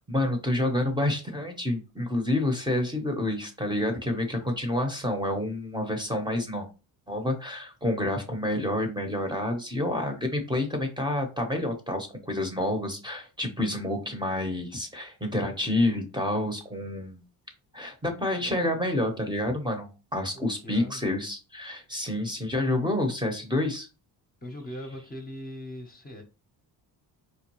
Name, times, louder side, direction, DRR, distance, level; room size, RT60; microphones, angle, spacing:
voice 1, 0.1-6.7 7.1-17.2 17.7-23.9, left 1 dB, 10° right, 0.9 m, -28 dB
voice 2, 20.3-21.1 24.4-26.2, left 1 dB, 20° left, 0.9 m, -40 dB
4.5 x 2.3 x 3.0 m
cardioid pair, 90°, 42 cm